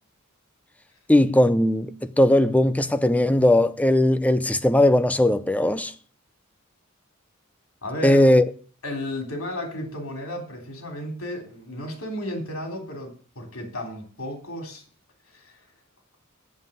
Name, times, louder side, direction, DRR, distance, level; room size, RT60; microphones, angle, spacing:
voice 1, 1.1-5.9 8.0-8.4, left 1 dB, 5° left, 0.6 m, -18 dB
voice 2, 7.8-8.2 8.8-14.8 15.3-15.5, left 1 dB, 75° left, 3.4 m, -33 dB
7.6 x 7.3 x 8.0 m
head